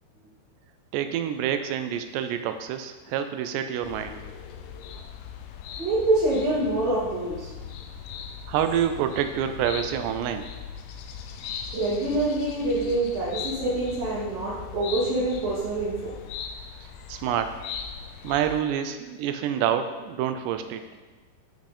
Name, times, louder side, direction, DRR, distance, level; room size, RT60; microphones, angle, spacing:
voice 1, 0.9-4.2 8.4-10.5 17.1-17.6 18.2-20.8, right 9 dB, 80° right, 8 dB, 2.9 m, -27 dB
sound 1, 3.8-18.6, left 7 dB, 80° left, 2.8 m, -39 dB
voice 2, 5.8-7.5 11.7-16.2, right 2 dB, 60° right, -10 dB, 3.8 m, -26 dB
11.5 x 6.1 x 4.4 m, 1.2 s
omnidirectional pair, 5.0 m